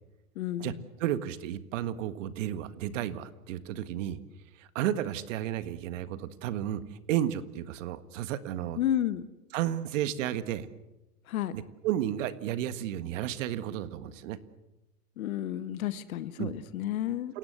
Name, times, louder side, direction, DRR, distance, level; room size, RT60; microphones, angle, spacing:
voice 1, 0.3-0.8 8.8-9.3 11.3-11.5 15.2-17.3, left 11 dB, 60° left, 13 dB, 1.5 m, -31 dB
voice 2, 1.0-4.2 4.5-8.8 9.5-10.7 11.5-14.4 16.4-16.5 17.3-17.4, right 11 dB, 50° right, 12 dB, 1.7 m, -32 dB
29.5 x 17.0 x 8.0 m, 1.0 s
hypercardioid pair, 130°, 49 cm